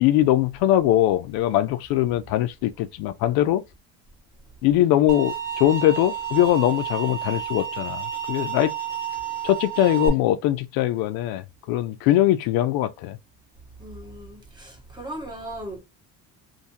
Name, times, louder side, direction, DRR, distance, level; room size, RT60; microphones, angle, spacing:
voice 1, 0.0-3.6 4.6-8.7 9.4-11.4 11.7-13.2, left 13 dB, 80° left, 0.5 m, -21 dB
sound 1, 5.1-10.1, right 8 dB, 80° right, 1.4 m, -31 dB
voice 2, 13.8-15.8, right 1 dB, 10° right, 0.8 m, -37 dB
2.6 x 2.4 x 2.6 m
cardioid pair, 160°, 36 cm